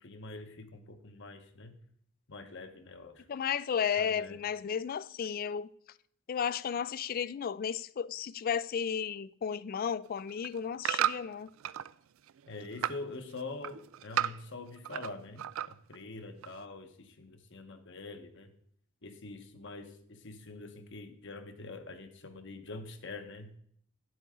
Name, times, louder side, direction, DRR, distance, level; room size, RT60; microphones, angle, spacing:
voice 1, 0.0-1.7 2.3-3.2 4.0-4.4 12.5-18.5 19.0-23.6, left 3 dB, 60° left, 1.1 m, -45 dB
voice 2, 3.3-5.7 6.3-11.5, left 7 dB, 45° left, 0.3 m, -33 dB
sound 1, 10.1-11.9 12.3-13.0 13.4-15.1 15.4-16.0 16.4-16.5, right 11 dB, 75° right, 0.3 m, -34 dB
10.5 x 7.8 x 3.7 m
head